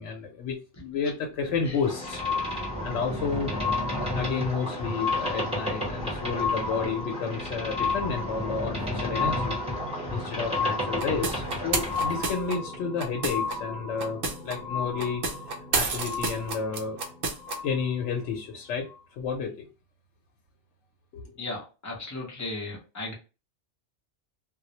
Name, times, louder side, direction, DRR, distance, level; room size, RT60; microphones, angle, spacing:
voice 1, 0.0-3.5 4.1-9.5 10.1-15.2 15.7-17.0 17.6-19.7 21.1-21.3, left 5 dB, 80° left, 0.9 m, -31 dB
sound 1, 1.3-18.2 18.9-19.0, left 4 dB, 40° left, 0.9 m, -34 dB
Boat Water vehicle, 1.8-12.4, equal, 5° right, 0.8 m, -33 dB
sound 2, 11.0-13.6 14.0-14.6 15.0-17.6, right 4 dB, 60° right, 0.7 m, -29 dB
voice 2, 21.4-23.1, left 2 dB, 20° left, 0.5 m, -35 dB
2.3 x 2.0 x 2.7 m
omnidirectional pair, 1.2 m